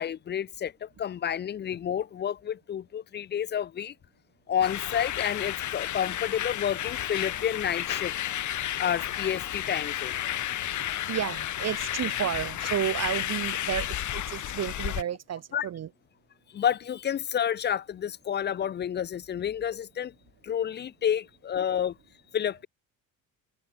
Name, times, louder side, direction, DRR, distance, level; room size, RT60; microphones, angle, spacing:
voice 1, 0.0-3.9 4.5-8.1 8.8-10.2 15.5-15.7 16.5-20.1 20.4-21.9 22.3-22.7, left 9 dB, 30° left, 0.5 m, -30 dB
sound 1, 4.6-15.0, left 12 dB, 55° left, 2.2 m, -32 dB
sound 2, 6.8-14.6, left 19 dB, 80° left, 4.8 m, -53 dB
voice 2, 11.1-15.9, right 10 dB, 45° right, 1.5 m, -32 dB
open air
cardioid pair, 115°, 36 cm